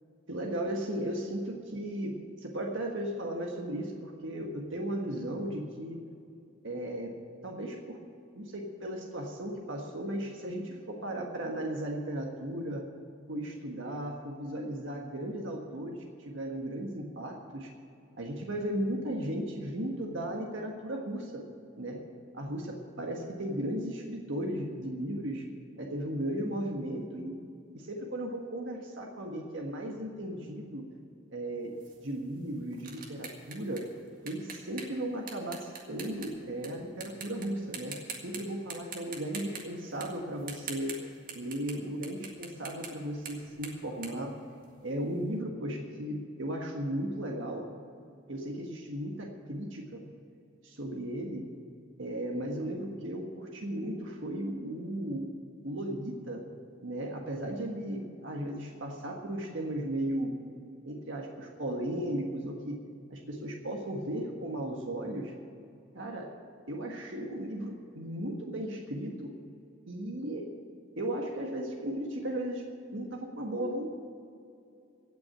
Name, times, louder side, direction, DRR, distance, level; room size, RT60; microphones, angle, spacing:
voice 1, 0.3-6.0 6.6-7.1 7.4-8.0 8.3-12.8 13.3-17.7 18.2-21.4 21.8-22.0 22.3-25.4 25.8-27.3 27.7-30.8 31.3-31.7 32.0-33.9 34.2-41.0 41.3-44.3 44.8-47.7 48.3-50.0 50.6-51.5 52.0-55.3 55.6-56.4 56.8-60.3 60.8-62.8 63.1-65.3 65.9-66.3 66.7-69.3 69.9-70.5 71.0-74.0, right 1 dB, 80° right, 1 dB, 1.6 m, -36 dB
sound 1, 31.8-36.7 37.0-37.5 37.7-38.4 38.7-41.8 42.0-45.0, right 5 dB, 45° right, 1.9 m, -44 dB
16.5 x 6.2 x 9.7 m, 2.5 s
head